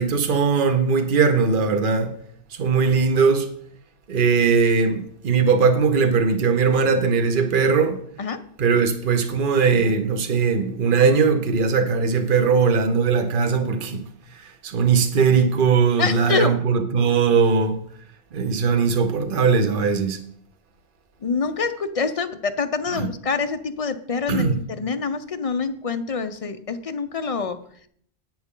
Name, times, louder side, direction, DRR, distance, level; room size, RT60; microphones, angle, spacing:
voice 1, 0.0-2.1 2.5-3.5 4.1-8.0 8.6-14.0 14.6-17.8 18.3-20.2 22.9-23.1 24.3-24.6, right 5 dB, 55° right, 1.1 m, -19 dB
voice 2, 16.0-16.5 21.2-27.6, left 5 dB, 40° left, 0.6 m, -26 dB
10.5 x 8.1 x 3.7 m
omnidirectional pair, 1.1 m